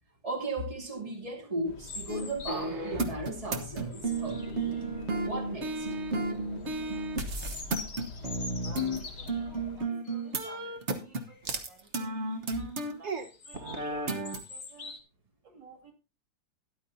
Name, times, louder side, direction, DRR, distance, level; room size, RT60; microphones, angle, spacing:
voice 1, 0.2-4.8 5.2-6.0 9.9-10.0 12.5-12.7, right 2 dB, 20° right, 2.6 m, -36 dB
sound 1, 1.6-9.8, left 4 dB, 65° left, 1.7 m, -48 dB
sound 2, 1.8-2.9 3.5-5.1 5.8-6.2 6.7-9.5 10.0-10.3 10.6-10.7 11.1-11.5 12.0-12.6 13.1-15.0, left 4 dB, 40° left, 1.8 m, -45 dB
sound 3, 2.1-9.0 9.3-13.2 13.5-14.4, right 2 dB, 40° right, 1.3 m, -33 dB
voice 2, 8.6-12.4 12.8-15.0 15.4-15.9, right 3 dB, 75° right, 3.1 m, -55 dB
13.5 x 11.0 x 2.7 m
omnidirectional pair, 2.0 m